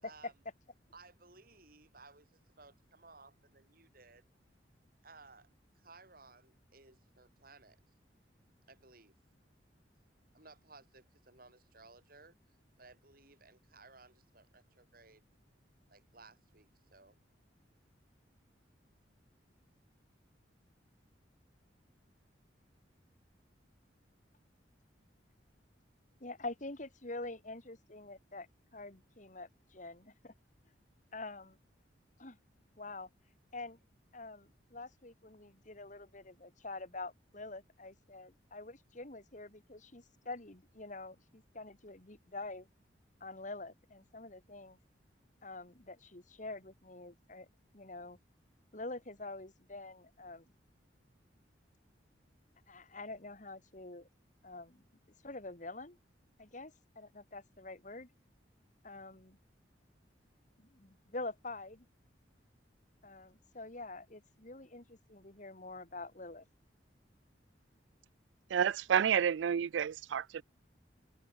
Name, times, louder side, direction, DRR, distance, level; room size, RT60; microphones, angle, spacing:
voice 1, 0.0-0.3 0.9-4.3 5.0-5.5 5.7-7.8 8.7-9.1 10.3-15.2 15.9-17.2, right 3 dB, 50° right, 7.7 m, -59 dB
voice 2, 26.2-28.5 28.7-30.3 31.1-31.6 32.2-32.4 32.8-33.1 33.5-33.8 34.1-42.7 43.2-44.8 45.4-47.5 47.7-48.2 48.7-50.4 52.7-54.1 54.4-54.8 55.2-56.0 56.4-58.1 58.8-59.4 60.6-61.8 63.0-66.4, left 2 dB, 45° left, 2.6 m, -46 dB
voice 3, 68.5-70.4, right 8 dB, 80° right, 0.4 m, -30 dB
head